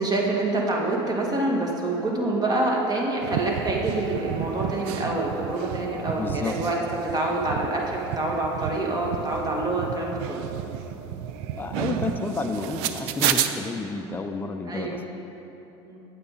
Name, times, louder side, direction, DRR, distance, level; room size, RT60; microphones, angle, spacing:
voice 1, 0.0-6.8 7.0-10.4 14.7-15.1 15.8-16.0, right 2 dB, 30° right, -1 dB, 1.7 m, -26 dB
sound 1, 3.2-13.5, right 10 dB, 75° right, 0.5 m, -31 dB
voice 2, 6.1-6.6 11.6-15.0, left 3 dB, 15° left, 4 dB, 0.6 m, -30 dB
8.5 x 8.3 x 4.1 m, 3.0 s
hypercardioid pair, 85°, 14 cm